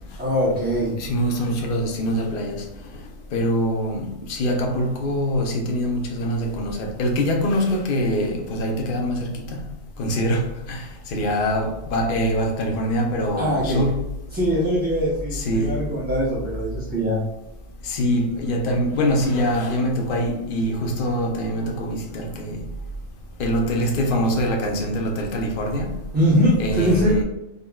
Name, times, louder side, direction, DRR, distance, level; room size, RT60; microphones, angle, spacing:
voice 1, 0.2-0.9 13.2-13.8 14.3-17.2 26.1-27.2, equal, 10° right, 0.8 m, -22 dB
voice 2, 1.0-2.6 3.3-9.6 10.0-14.0 15.3-15.7 17.8-22.6 23.4-25.9 26.6-27.2, equal, 55° left, 0.8 m, -24 dB
3.8 x 3.6 x 2.3 m
omnidirectional pair, 1.2 m